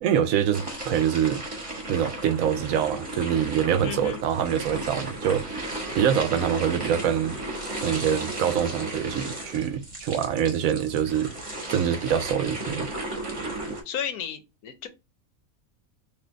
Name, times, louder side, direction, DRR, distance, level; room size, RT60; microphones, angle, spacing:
voice 1, 0.0-1.4 1.9-5.6 5.9-7.4 7.8-11.3 11.7-12.9, right 9 dB, 75° right, 1.0 m, -25 dB
sound 1, 0.5-13.8, right 1 dB, 25° right, 1.1 m, -35 dB
voice 2, 3.8-4.2 13.8-14.9, left 8 dB, 90° left, 1.2 m, -33 dB
4.3 x 2.6 x 3.3 m
omnidirectional pair, 1.5 m